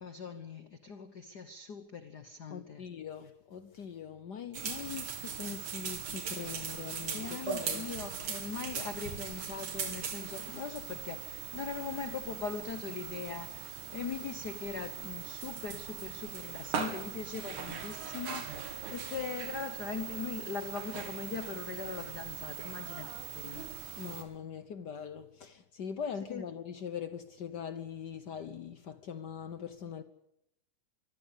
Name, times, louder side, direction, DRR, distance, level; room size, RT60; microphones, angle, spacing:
voice 1, 0.0-2.8 7.1-23.7 26.3-26.4, left 6 dB, 55° left, 1.2 m, -41 dB
voice 2, 2.5-7.9 23.9-30.0, left 7 dB, 85° left, 0.9 m, -42 dB
sound 1, 4.5-24.2, right 7 dB, 85° right, 4.1 m, -40 dB
sound 2, 17.2-21.6 22.6-23.3, right 5 dB, 65° right, 3.3 m, -53 dB
24.0 x 16.0 x 8.3 m
omnidirectional pair, 3.4 m